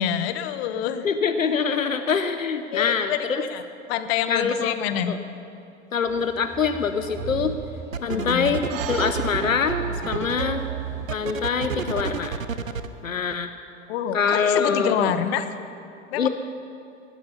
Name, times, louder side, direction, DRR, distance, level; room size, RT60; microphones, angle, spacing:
voice 1, 0.0-1.1 2.7-3.6 3.9-5.1 8.1-8.5 13.9-15.4 16.1-16.3, left 9 dB, 50° left, 10 dB, 1.1 m, -26 dB
voice 2, 1.0-3.4 4.3-4.7 5.1-5.2 5.9-7.6 8.0-9.8 10.1-10.6 11.1-12.4 13.0-13.5 14.1-15.1 16.2-16.3, left 6 dB, 90° left, 9 dB, 0.8 m, -24 dB
sound 1, 6.1-12.2, right 4 dB, 5° right, 1.8 m, -41 dB
sound 2, 7.2-7.5 7.9-12.9, right 6 dB, 90° right, 0.8 m, -30 dB
sound 3, 8.7-13.3, right 12 dB, 45° right, 0.9 m, -41 dB
19.5 x 11.5 x 5.5 m, 2.6 s
figure-of-eight pair, 90°, 39 cm